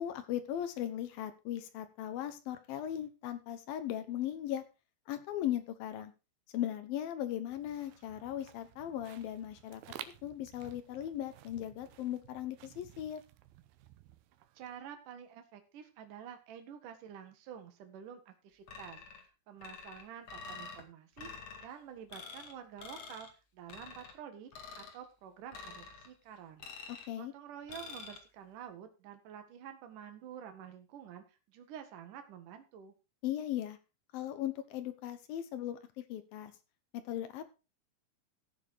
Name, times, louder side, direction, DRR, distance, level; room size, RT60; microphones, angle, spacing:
voice 1, 0.0-4.6 5.1-6.1 6.5-9.8 10.2-13.2 26.9-27.3 33.2-33.8 34.1-35.8 36.1-36.5 36.9-37.5, left 11 dB, 70° left, 10 dB, 2.3 m, -38 dB
sound 1, 7.5-14.8, right 13 dB, 75° right, 2.3 m, -54 dB
voice 2, 14.6-23.3 23.5-24.5 24.8-26.7 27.1-32.9, right 9 dB, 55° right, 7 dB, 2.7 m, -49 dB
sound 2, 18.7-19.2 19.6-20.8 21.2-21.7 22.1-22.5 22.8-23.3 23.7-24.1 24.5-25.0 25.5-26.1 26.6-27.1 27.7-28.2, left 4 dB, 45° left, 2.3 m, -47 dB
15.0 x 7.4 x 4.6 m, 0.29 s
omnidirectional pair, 5.3 m